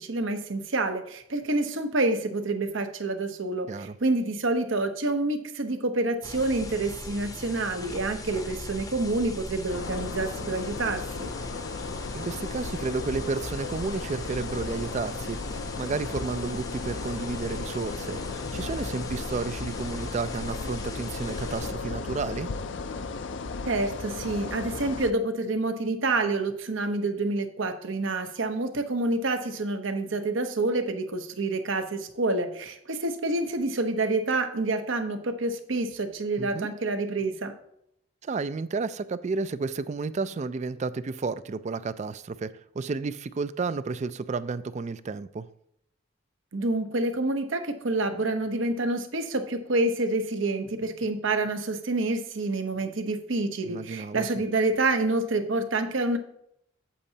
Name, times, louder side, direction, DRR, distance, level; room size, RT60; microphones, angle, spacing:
voice 1, 0.0-11.3 23.7-37.5 46.5-56.2, right 2 dB, 70° right, 0.9 m, -28 dB
sound 1, 6.2-21.7, left 2 dB, 20° left, 0.7 m, -40 dB
sound 2, 9.7-25.1, left 4 dB, 60° left, 0.5 m, -35 dB
voice 2, 12.1-15.4 15.8-18.2 18.5-22.5 36.4-36.7 38.2-42.5 42.7-45.5 53.6-54.3, right 4 dB, 35° right, 0.3 m, -32 dB
8.5 x 8.1 x 2.8 m
head